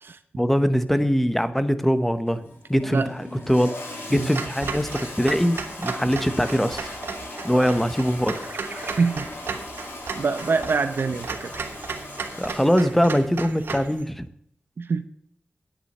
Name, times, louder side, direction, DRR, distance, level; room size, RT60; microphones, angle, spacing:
voice 1, 0.4-2.4 2.7-3.7 4.1-4.9 5.2-6.9 7.4-8.3 12.4-14.2, equal, 5° left, 11 dB, 1.0 m, -22 dB
Toilet flush, 2.3-13.3, left 1 dB, 85° left, 4.9 m, -38 dB
Clock, 4.3-13.9, right 5 dB, 90° right, 1.2 m, -35 dB
sound 1, 8.2-14.1, right 3 dB, 55° right, 2.2 m, -46 dB
voice 2, 9.0-9.3 10.2-11.5 14.8-15.1, right 4 dB, 70° right, 10 dB, 0.7 m, -25 dB
9.8 x 8.5 x 6.5 m, 0.68 s
wide cardioid pair, 70°, 4 cm